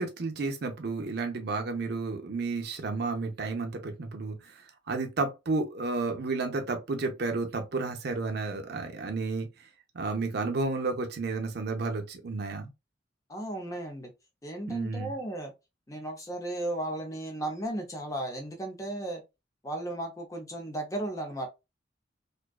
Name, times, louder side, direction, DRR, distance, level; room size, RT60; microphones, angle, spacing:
voice 1, 0.0-9.7 9.9-12.7 14.7-15.1, right 3 dB, 55° right, 0.5 m, -32 dB
voice 2, 13.3-14.1 14.4-15.5 15.9-19.2 19.6-21.5, right 1 dB, 15° left, 0.5 m, -35 dB
2.5 x 2.3 x 2.2 m
head